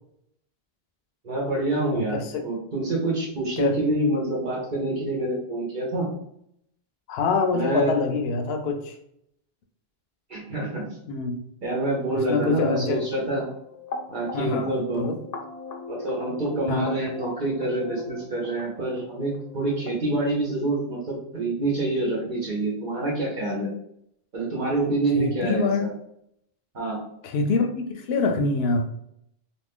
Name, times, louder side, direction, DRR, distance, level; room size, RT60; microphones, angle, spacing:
voice 1, 1.2-6.1 7.5-7.9 10.3-11.0 11.6-13.5 14.1-15.0 15.9-23.7 24.3-25.9 26.7-27.0, right 2 dB, 55° right, -4 dB, 1.0 m, -26 dB
voice 2, 1.9-2.4 3.6-3.8 7.1-8.9 11.1-11.4 12.1-13.0 14.3-15.2 16.7-16.9 25.1-25.9 27.2-28.9, left 4 dB, 80° left, 5 dB, 0.8 m, -25 dB
sound 1, 12.5-19.9, left 4 dB, 50° left, 0.5 m, -39 dB
2.6 x 2.5 x 3.5 m, 0.73 s
omnidirectional pair, 1.0 m